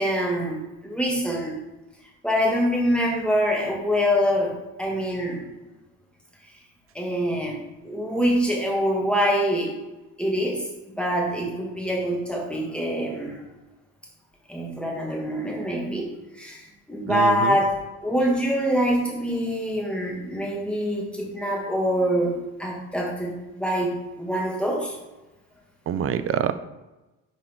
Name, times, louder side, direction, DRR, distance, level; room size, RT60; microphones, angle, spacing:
voice 1, 0.0-1.6 2.2-5.4 6.9-7.6 7.8-9.7 10.2-13.4 14.5-16.6 16.9-17.8 18.0-22.3 22.6-25.0, equal, 5° left, -3 dB, 1.7 m, -25 dB
voice 2, 17.1-17.6 25.9-26.5, right 9 dB, 40° right, 12 dB, 0.4 m, -25 dB
4.9 x 4.3 x 4.4 m, 1.1 s
cardioid pair, 95°, 37 cm